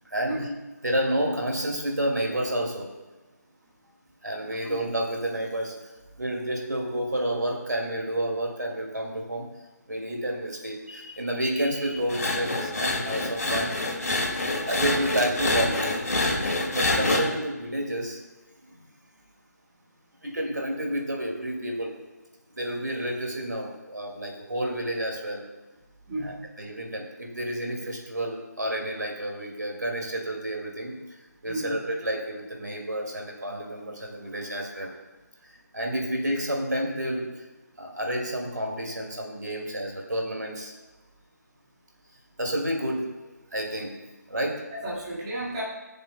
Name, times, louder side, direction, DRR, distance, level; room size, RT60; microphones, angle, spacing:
voice 1, 0.0-0.5 0.8-2.9 4.2-5.7 6.2-9.5 9.9-13.8 14.7-15.9 16.7-18.2 18.6-18.9 20.2-21.9 22.5-25.4 26.2-30.9 31.4-34.9 35.4-37.5 37.8-40.7 42.4-44.0 44.3-44.6, right 1 dB, 75° right, 0 dB, 2.3 m, -30 dB
sound 1, 12.1-17.2, left 2 dB, 60° left, 2.3 m, -26 dB
voice 2, 26.1-26.4 31.4-31.8 44.7-45.6, right 1 dB, 20° right, -7 dB, 1.8 m, -32 dB
19.0 x 6.9 x 2.3 m, 1.2 s
figure-of-eight pair, 155°, 10 cm